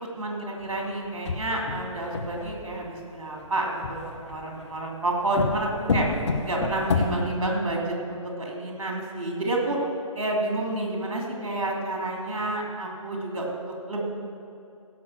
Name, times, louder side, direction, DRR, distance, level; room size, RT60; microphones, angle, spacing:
voice 1, 0.0-6.1 6.4-9.8 10.1-14.0, right 2 dB, 65° right, -1 dB, 3.3 m, -29 dB
sound 1, 1.1-2.7 3.8-4.7 5.3-7.2, left 4 dB, 55° left, 1.3 m, -28 dB
16.0 x 6.1 x 6.3 m, 2.7 s
figure-of-eight pair, 145°, 18 cm